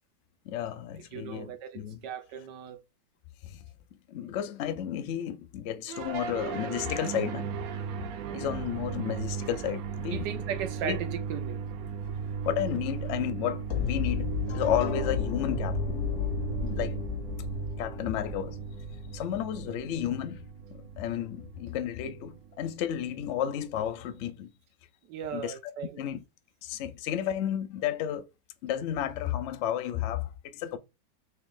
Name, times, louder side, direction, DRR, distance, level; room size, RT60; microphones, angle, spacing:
voice 1, 0.5-2.0 3.4-3.6 4.1-7.6 8.3-10.3 10.8-11.0 12.4-16.0 16.6-17.0 17.8-18.6 19.1-20.5 20.7-24.5 25.3-25.5 25.8-26.2 26.6-28.3 28.6-30.8, left 10 dB, 85° left, 0.6 m, -32 dB
voice 2, 1.1-2.8 8.2-8.5 10.1-11.6 25.1-26.1, right 9 dB, 90° right, 1.3 m, -37 dB
sound 1, 5.9-24.2, right 6 dB, 70° right, 0.9 m, -37 dB
sound 2, 13.7-19.7, left 9 dB, 65° left, 1.1 m, -33 dB
3.4 x 2.9 x 3.6 m
omnidirectional pair, 1.8 m